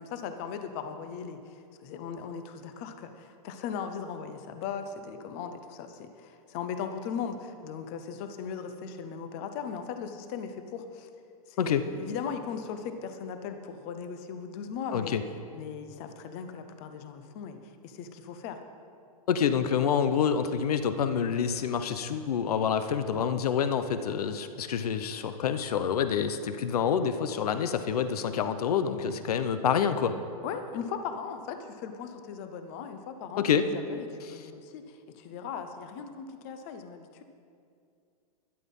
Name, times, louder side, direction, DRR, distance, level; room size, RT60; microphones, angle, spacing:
voice 1, 0.0-11.1 11.5-15.2 15.5-18.6 30.4-37.2, left 6 dB, 25° left, 8 dB, 0.6 m, -38 dB
voice 2, 14.9-15.2 19.3-30.2 33.4-33.7 34.3-34.4, left 7 dB, 80° left, 11 dB, 0.8 m, -27 dB
12.0 x 11.0 x 5.4 m, 2.4 s
supercardioid pair, 180°, 19 cm